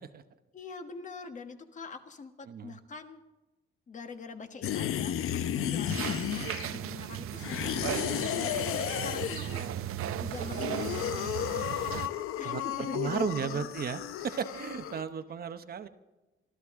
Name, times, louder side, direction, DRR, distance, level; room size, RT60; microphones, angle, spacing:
voice 1, 0.5-3.2 3.9-11.8 12.0-13.7, left 4 dB, 35° left, 7 dB, 1.3 m, -44 dB
sound 1, 4.6-6.9 7.4-9.7 10.3-15.0, left 10 dB, 90° left, 0.8 m, -33 dB
sound 2, 5.9-12.1, right 11 dB, 90° right, 0.7 m, -36 dB
voice 2, 9.4-9.9 12.4-12.6 12.9-15.9, right 7 dB, 45° right, 9 dB, 0.9 m, -35 dB
25.0 x 14.0 x 3.7 m, 1.1 s
wide cardioid pair, 165°, 21 cm